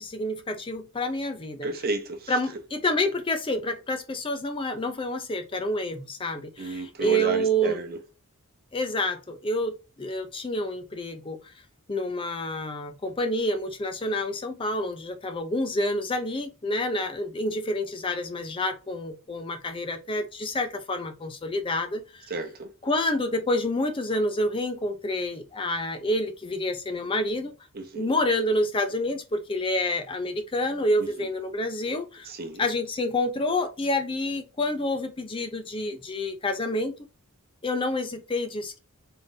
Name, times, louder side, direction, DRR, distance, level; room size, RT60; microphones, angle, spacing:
voice 1, 0.0-1.7 2.3-7.8 8.7-11.5 11.9-22.3 22.8-27.5 27.9-32.3 32.6-36.9 37.6-38.8, left 1 dB, 25° left, 0.5 m, -28 dB
voice 2, 1.6-2.3 6.6-8.0 22.3-22.7 27.7-28.1 31.0-31.3 32.2-32.7, right 3 dB, 45° right, 0.8 m, -32 dB
3.8 x 2.5 x 3.9 m
head